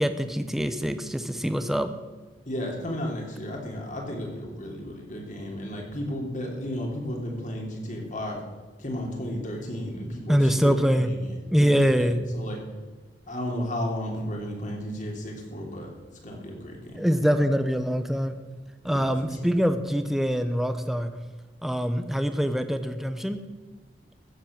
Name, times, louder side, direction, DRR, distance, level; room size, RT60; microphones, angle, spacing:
voice 1, 0.0-1.9 10.3-11.1 11.5-12.2 16.9-18.3 18.8-21.1 21.6-23.4, equal, ahead, 9 dB, 0.9 m, -24 dB
voice 2, 2.4-8.4 8.8-12.6 13.3-15.9 16.2-17.0 18.8-19.5, equal, 45° left, 0 dB, 3.3 m, -33 dB
15.5 x 7.6 x 7.3 m, 1.3 s
head